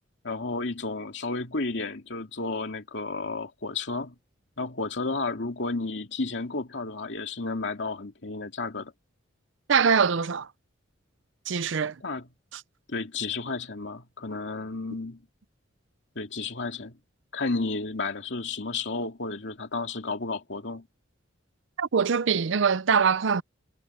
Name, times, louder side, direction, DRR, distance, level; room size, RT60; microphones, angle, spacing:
voice 1, 0.2-4.1 4.6-8.9 12.0-12.3 12.9-15.2 16.2-16.9 17.3-20.9, left 3 dB, 65° left, 2.6 m, -32 dB
voice 2, 9.7-10.5 11.5-11.9 12.5-12.6 21.8-23.4, right 6 dB, 65° right, 0.6 m, -23 dB
head